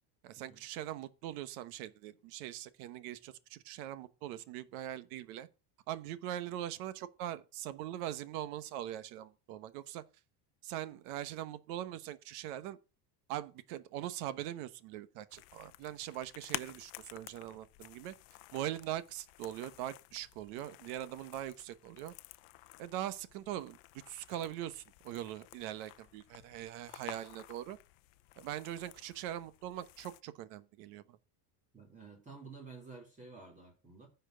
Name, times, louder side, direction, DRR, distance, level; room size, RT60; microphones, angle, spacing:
voice 1, 0.2-5.5 5.9-10.0 10.6-12.8 13.3-18.1 18.5-22.1 22.8-23.8 24.1-27.8 28.4-31.2, right 12 dB, 65° right, 1.1 m, -42 dB
sound 1, 15.3-30.2, left 20 dB, 60° left, 0.7 m, -51 dB
voice 2, 31.7-34.1, right 4 dB, 15° right, 2.5 m, -51 dB
10.0 x 4.6 x 7.7 m
cardioid pair, 170°, 46 cm